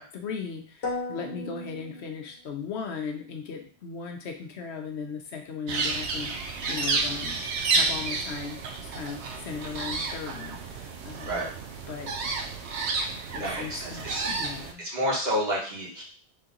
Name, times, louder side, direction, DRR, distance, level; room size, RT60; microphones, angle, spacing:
voice 1, 0.0-7.4 7.7-11.4 11.9-12.1 12.8-13.0 13.3-14.8, left 6 dB, 80° left, 3 dB, 1.0 m, -37 dB
sound 1, 0.8-2.8, left 2 dB, 60° left, 1.1 m, -36 dB
sound 2, 5.7-14.7, right 3 dB, 90° right, 0.9 m, -31 dB
sound 3, 6.4-8.8, right 3 dB, 5° left, 0.9 m, -43 dB
voice 2, 13.4-14.2 14.8-16.0, equal, 40° right, -5 dB, 1.3 m, -30 dB
3.3 x 2.9 x 3.7 m, 0.42 s
omnidirectional pair, 1.1 m